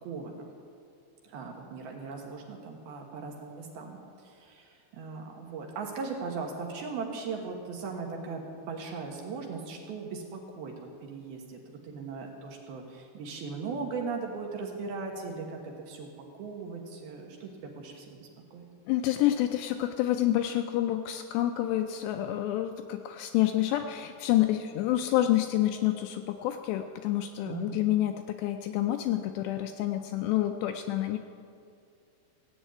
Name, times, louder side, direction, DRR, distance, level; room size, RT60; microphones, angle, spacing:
voice 1, 0.0-0.5 1.2-16.1 16.4-18.6 27.4-28.0, right 4 dB, 65° right, 1 dB, 2.9 m, -38 dB
voice 2, 18.9-31.2, left 13 dB, 80° left, 6 dB, 2.5 m, -28 dB
16.5 x 8.0 x 9.0 m, 2.4 s
omnidirectional pair, 5.3 m